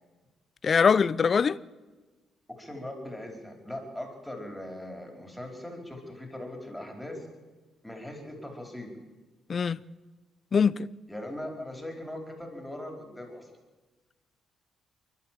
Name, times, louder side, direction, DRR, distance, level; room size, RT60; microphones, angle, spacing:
voice 1, 0.6-1.6 9.5-9.8 10.5-10.9, left 6 dB, 45° left, 0.7 m, -22 dB
voice 2, 2.5-7.2 7.8-9.0 11.1-13.5, left 1 dB, 5° left, 4.8 m, -40 dB
29.0 x 12.0 x 7.8 m
cardioid pair, 90°, 0 cm